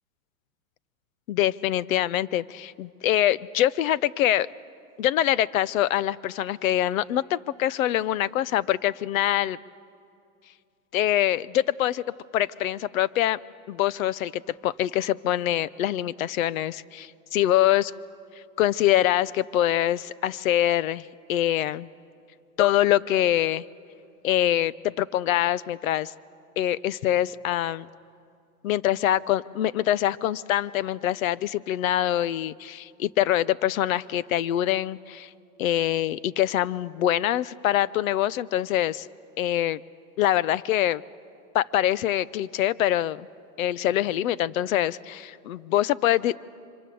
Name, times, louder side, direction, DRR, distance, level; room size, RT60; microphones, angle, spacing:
voice 1, 1.3-4.5 5.0-9.6 10.9-12.0 12.3-13.4 13.7-17.9 18.6-21.9 22.6-23.6 24.2-26.1 26.6-27.9 28.6-35.3 35.6-39.1 39.4-39.8 40.2-41.0 41.5-43.3 43.6-46.4, left 12 dB, 65° left, 20 dB, 0.7 m, -24 dB
29.5 x 25.0 x 7.7 m, 2.5 s
supercardioid pair, 155°, 44 cm